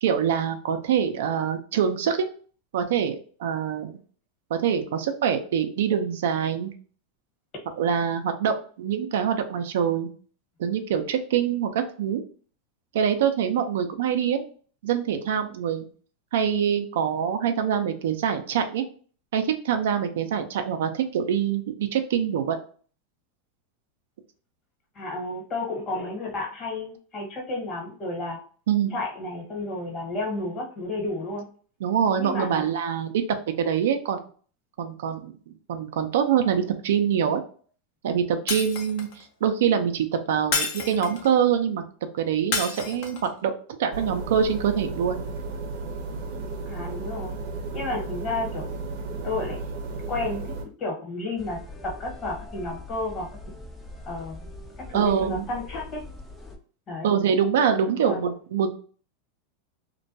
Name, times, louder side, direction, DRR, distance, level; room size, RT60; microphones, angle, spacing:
voice 1, 0.0-2.3 2.7-4.0 4.5-6.7 7.8-10.1 10.6-12.2 12.9-14.4 14.8-15.9 16.3-18.8 19.3-22.6 28.7-28.9 31.8-33.2 33.6-34.2 34.8-35.3 35.7-37.4 38.0-41.8 42.1-43.5 43.8-45.3 54.9-55.4 57.0-58.7, right 8 dB, 75° right, 7 dB, 0.4 m, -24 dB
voice 2, 24.9-28.4 28.9-31.4 32.2-32.6 46.7-47.4 47.7-48.6 49.2-49.6 50.1-50.4 50.8-53.3 54.0-54.5 54.9-56.0 56.9-57.1 58.0-58.3, left 2 dB, 35° left, 0 dB, 1.1 m, -31 dB
Shatter, 38.5-39.2 40.5-41.3 42.5-43.3, left 4 dB, 60° left, 0.6 m, -29 dB
sound 1, 43.9-50.6, right 3 dB, 60° right, 0.8 m, -34 dB
sound 2, 51.4-56.6, left 2 dB, 10° left, 0.4 m, -42 dB
2.2 x 2.1 x 2.7 m, 0.42 s
hypercardioid pair, 110°, 0 cm